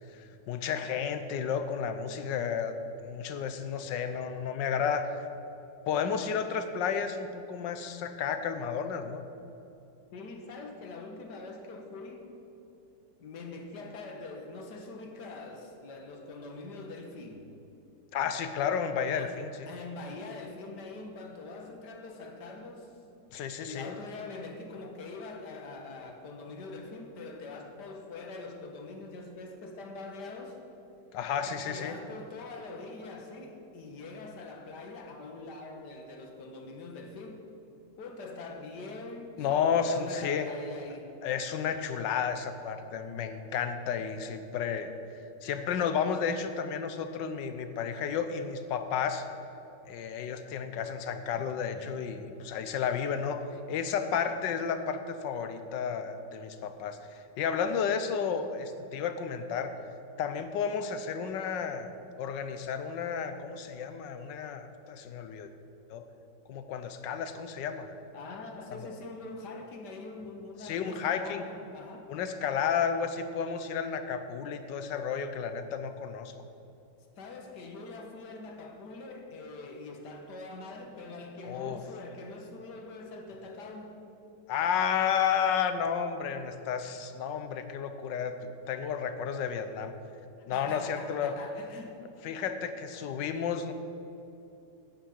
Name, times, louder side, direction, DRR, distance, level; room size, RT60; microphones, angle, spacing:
voice 1, 0.2-2.7 3.0-5.2 5.9-9.2 18.1-19.7 23.3-23.9 31.1-31.9 39.4-40.5 41.2-44.9 45.4-49.2 49.9-59.7 60.2-61.9 62.2-65.5 65.9-66.0 66.5-67.9 68.7-68.9 70.6-71.4 72.1-76.3 81.4-81.8 84.5-89.9 90.5-91.4 92.2-93.7, left 7 dB, 85° left, 9 dB, 1.5 m, -32 dB
voice 2, 10.1-12.3 13.2-17.5 19.1-19.4 19.7-23.0 23.6-30.6 31.4-37.5 38.0-41.1 68.1-72.1 77.2-84.0 90.5-92.0, left 3 dB, 70° left, 3 dB, 1.9 m, -43 dB
9.5 x 8.8 x 7.1 m, 2.8 s
omnidirectional pair, 1.9 m